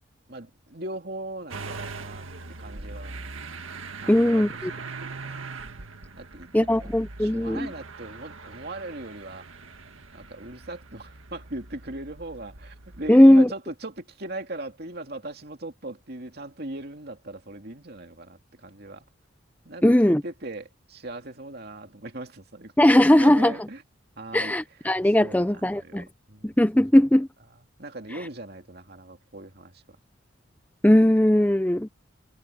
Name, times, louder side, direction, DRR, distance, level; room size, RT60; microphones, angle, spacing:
voice 1, 0.3-2.2 2.6-3.1 4.0-4.4 4.7-5.4 6.2-6.9 7.2-9.5 10.1-19.0 19.6-23.8 24.2-24.5 25.2-26.6 27.8-30.0, right 2 dB, 50° right, 2.7 m, -39 dB
Motor vehicle (road) / Engine starting, 1.5-13.1, right 3 dB, 90° right, 1.9 m, -41 dB
voice 2, 4.1-4.7 6.5-7.7 13.1-13.5 19.8-20.2 22.8-23.6 24.3-26.0 26.4-27.3 30.8-31.9, left 1 dB, 10° left, 0.5 m, -18 dB
head